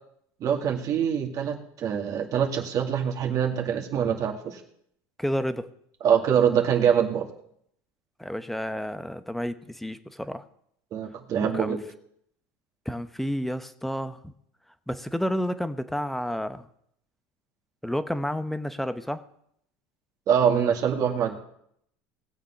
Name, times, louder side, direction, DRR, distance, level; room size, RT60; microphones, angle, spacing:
voice 1, 0.4-4.6 6.0-7.3 10.9-11.8 20.3-21.4, right 8 dB, 45° right, 2 dB, 2.2 m, -24 dB
voice 2, 5.2-5.7 8.2-10.4 11.4-11.8 12.9-14.3 14.9-16.7 17.8-19.2, equal, 5° left, 12 dB, 0.9 m, -30 dB
19.0 x 7.5 x 5.8 m, 0.72 s
supercardioid pair, 105°, 8 cm